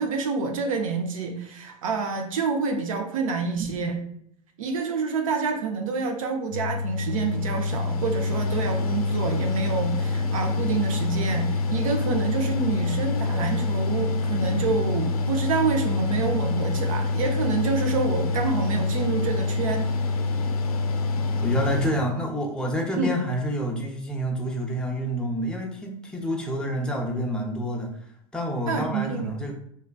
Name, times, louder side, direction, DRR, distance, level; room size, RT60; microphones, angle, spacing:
voice 1, 0.0-4.0 4.6-19.9 23.0-23.1 28.7-29.2, right 4 dB, 65° right, 4 dB, 0.5 m, -27 dB
Mechanical fan, 6.5-21.9, left 3 dB, 80° left, 0.4 m, -26 dB
voice 2, 21.1-28.1 28.3-29.5, equal, 5° left, -1 dB, 0.6 m, -28 dB
3.1 x 2.3 x 2.2 m, 0.67 s
hypercardioid pair, 95°, 19 cm